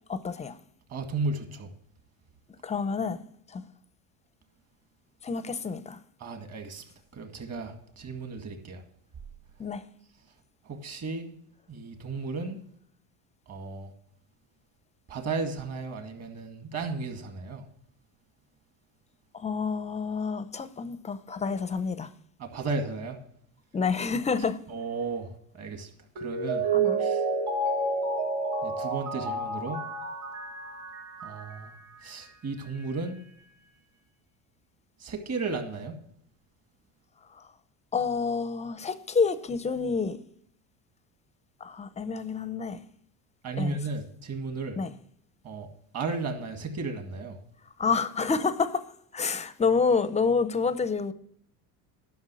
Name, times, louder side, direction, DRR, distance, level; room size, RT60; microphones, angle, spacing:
voice 1, 0.1-0.5 2.6-3.2 3.5-3.6 5.2-6.0 9.6-9.8 19.3-22.1 23.7-24.6 26.7-27.0 37.9-40.2 41.6-42.8 43.6-43.8 44.8-44.9 47.8-48.8 49.1-51.1, left 5 dB, 15° left, 0.5 m, -28 dB
voice 2, 0.9-1.7 6.2-6.8 7.1-8.8 10.6-11.3 11.7-12.6 13.5-13.9 15.1-17.7 22.4-23.2 24.7-25.9 26.2-26.6 27.0-27.2 28.6-29.8 31.2-31.7 32.0-33.2 35.0-35.9 43.4-44.8 45.4-45.7 45.9-47.4, right 3 dB, 35° right, 2.0 m, -34 dB
Mallet percussion, 26.2-31.7 32.0-32.1, right 3 dB, 85° right, 3.9 m, -29 dB
11.5 x 6.1 x 6.2 m
cardioid pair, 130°, 42 cm